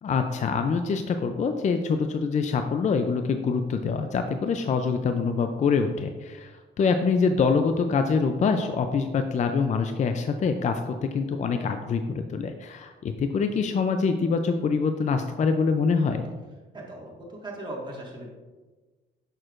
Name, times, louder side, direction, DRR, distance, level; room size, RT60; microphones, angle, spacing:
voice 1, 0.0-16.3, left 5 dB, 35° left, 7 dB, 0.4 m, -25 dB
voice 2, 16.7-18.3, right 1 dB, 25° right, -3 dB, 1.8 m, -38 dB
6.5 x 6.2 x 2.5 m, 1.3 s
cardioid pair, 90°, 20 cm